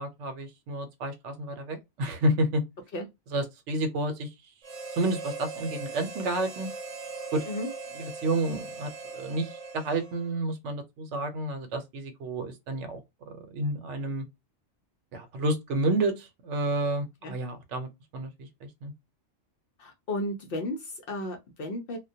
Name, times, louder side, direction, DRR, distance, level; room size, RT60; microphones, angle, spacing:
voice 1, 0.0-2.6 3.3-4.3 5.0-6.7 7.3-7.4 7.9-13.0 13.3-14.2 15.1-18.9, right 1 dB, 75° right, 0.9 m, -30 dB
Harmonica, 4.6-10.4, right 4 dB, 60° right, 0.4 m, -40 dB
voice 2, 19.8-22.0, left 1 dB, 60° left, 0.7 m, -34 dB
2.2 x 2.2 x 2.6 m
omnidirectional pair, 1.2 m